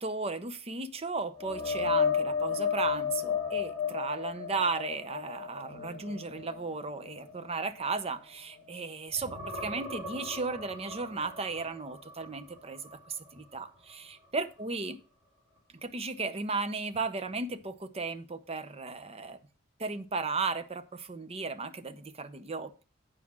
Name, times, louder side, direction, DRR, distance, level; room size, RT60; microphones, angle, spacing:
voice 1, 0.0-15.0 15.8-19.4 19.8-22.8, right 4 dB, 30° right, 0.7 m, -35 dB
sound 1, 1.4-8.8 9.1-13.0 13.4-13.6 16.9-17.0, left 6 dB, ahead, 5.0 m, -34 dB
9.4 x 4.9 x 6.1 m
head